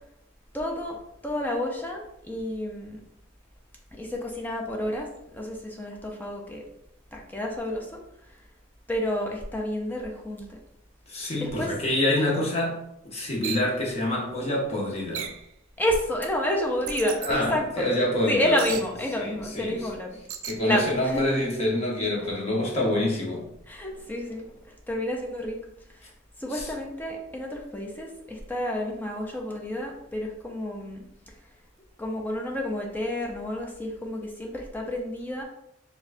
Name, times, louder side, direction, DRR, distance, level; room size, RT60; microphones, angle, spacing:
voice 1, 0.5-3.0 3.9-6.7 7.1-8.5 8.9-10.6 11.4-11.7 15.8-17.9 18.3-20.2 20.6-21.4 23.7-25.6 25.9-26.1 26.4-31.1 31.4-31.6 32.0-35.4, left 1 dB, 10° left, 0 dB, 0.5 m, -30 dB
voice 2, 11.1-12.8 13.0-15.3 17.2-18.6 19.2-19.8 20.4-23.5, left 1 dB, 30° left, -3 dB, 0.9 m, -26 dB
sound 1, 13.4-13.7 15.1-15.5 16.9-17.3 18.6-18.9 20.3-20.6, right 8 dB, 90° right, 0.4 m, -34 dB
4.4 x 2.2 x 2.5 m, 0.79 s
head